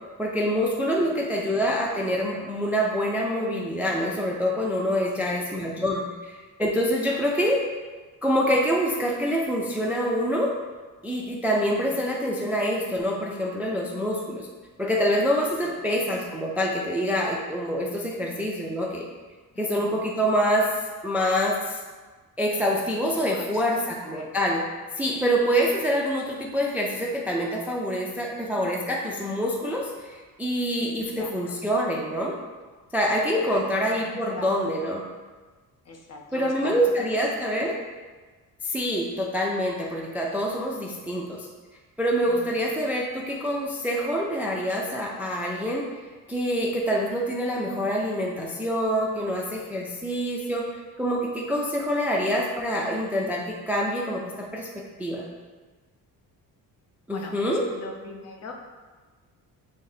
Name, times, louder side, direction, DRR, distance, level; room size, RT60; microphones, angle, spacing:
voice 1, 0.2-7.6 8.2-10.5 11.0-14.5 14.8-19.1 19.6-20.7 21.0-21.8 22.4-24.6 25.0-32.3 32.9-35.0 36.3-37.7 38.6-41.5 42.0-46.0 46.3-50.6 51.0-54.7 55.0-55.3 57.1-57.6, equal, 5° right, -2 dB, 0.3 m, -26 dB
voice 2, 5.0-5.6 7.1-7.3 11.6-12.0 15.6-15.7 19.5-20.2 23.1-23.8 24.1-24.3 25.0-25.2 30.8-31.6 33.4-33.6 33.9-34.8 35.8-36.8 37.4-37.6 42.2-42.6 57.1-58.5, left 3 dB, 45° left, 2 dB, 0.6 m, -42 dB
3.4 x 2.6 x 3.9 m, 1.3 s
cardioid pair, 105°, 35 cm